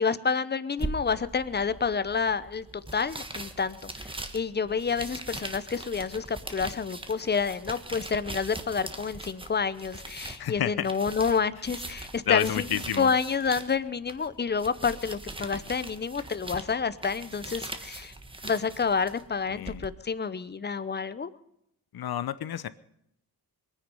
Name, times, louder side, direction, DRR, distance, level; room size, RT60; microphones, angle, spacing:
voice 1, 0.0-12.7 13.0-18.1 18.4-21.3, left 5 dB, 25° left, 15 dB, 0.8 m, -29 dB
sound 1, 0.8-19.9, right 2 dB, 15° right, 1.3 m, -41 dB
voice 2, 10.4-10.9 12.3-13.1 19.5-19.8 21.9-22.7, left 10 dB, 65° left, 15 dB, 0.9 m, -30 dB
22.0 x 9.9 x 5.4 m, 0.78 s
cardioid pair, 100°, 40 cm